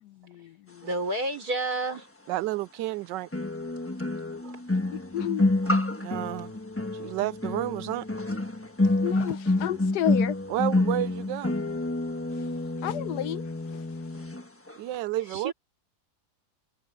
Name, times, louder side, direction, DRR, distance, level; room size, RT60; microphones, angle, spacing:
voice 1, 0.0-0.9 4.9-5.5 8.8-10.4 12.3-13.4 13.7-14.3, left 12 dB, 75° left, 1.1 m, -33 dB
voice 2, 0.8-2.1 4.0-4.1 4.4-4.8 5.6-5.8 8.3-8.4 15.3-15.5, right 2 dB, 60° right, 5.5 m, -31 dB
sound 1, 1.9-2.0 3.3-14.4 14.7-14.9, left 2 dB, 10° left, 1.1 m, -28 dB
voice 3, 2.3-3.3 6.0-6.5 6.9-8.1 10.5-11.5 14.8-15.5, right 15 dB, 85° right, 1.3 m, -30 dB
omnidirectional pair, 1.9 m